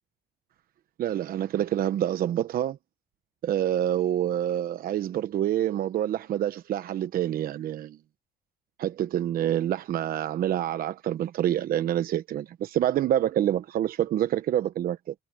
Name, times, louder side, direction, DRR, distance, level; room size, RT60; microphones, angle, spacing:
voice 1, 1.0-2.8 3.4-8.0 8.8-15.1, right 11 dB, 60° right, 1.0 m, -27 dB
cardioid pair, 110°, 17 cm